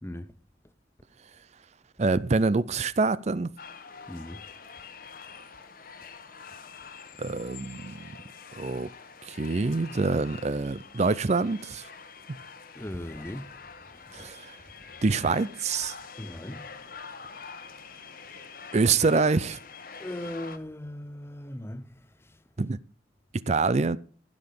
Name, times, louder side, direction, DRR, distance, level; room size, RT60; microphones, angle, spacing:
voice 1, 0.0-0.4 4.1-4.4 12.7-14.3 16.2-16.9 20.0-22.4, left 1 dB, 15° left, 0.6 m, -39 dB
voice 2, 2.0-3.5 7.2-8.0 8.6-8.9 9.3-11.9 14.1-14.6 15.0-16.0 18.7-19.6 22.6-22.8 23.5-24.0, right 3 dB, 35° right, 0.5 m, -25 dB
sound 1, 3.6-20.6, left 5 dB, 50° left, 1.2 m, -46 dB
16.0 x 6.0 x 6.7 m
head